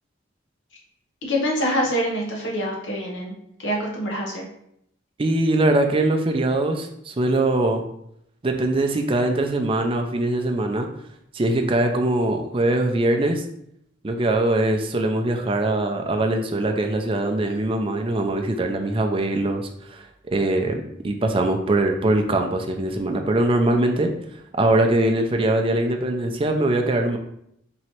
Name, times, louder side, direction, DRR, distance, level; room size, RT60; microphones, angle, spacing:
voice 1, 1.2-3.3 3.6-4.4, equal, 80° left, -1 dB, 1.0 m, -25 dB
voice 2, 5.2-7.8 8.4-10.9 11.3-13.4 14.0-24.1 24.5-27.2, right 2 dB, 30° right, 4 dB, 0.4 m, -22 dB
3.1 x 2.8 x 4.3 m, 0.74 s
head